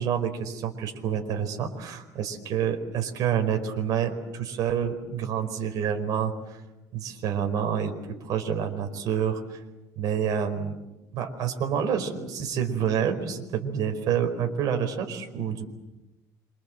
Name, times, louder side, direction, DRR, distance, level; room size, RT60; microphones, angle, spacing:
voice 1, 0.0-6.6 6.9-7.9 8.2-9.6 10.0-10.8 11.1-15.7, right 8 dB, 60° right, 6 dB, 4.8 m, -28 dB
27.5 x 26.0 x 7.8 m, 0.99 s
cardioid pair, 135°, 7 cm